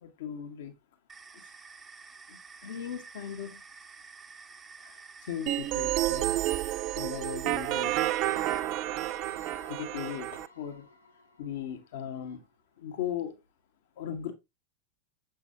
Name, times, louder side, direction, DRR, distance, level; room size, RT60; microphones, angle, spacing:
voice 1, 0.0-0.7 2.3-3.6 4.8-6.3 6.9-7.9 9.7-10.9 11.4-12.4 12.8-13.4 14.0-14.3, left 9 dB, 55° left, 1.4 m, -38 dB
sound 1, 1.1-8.6, right 4 dB, 15° right, 0.9 m, -50 dB
sound 2, 5.5-10.5, right 15 dB, 40° right, 0.4 m, -30 dB
sound 3, 7.9-12.4, left 3 dB, 80° left, 1.2 m, -53 dB
7.2 x 6.1 x 2.7 m
figure-of-eight pair, 90°, 0 cm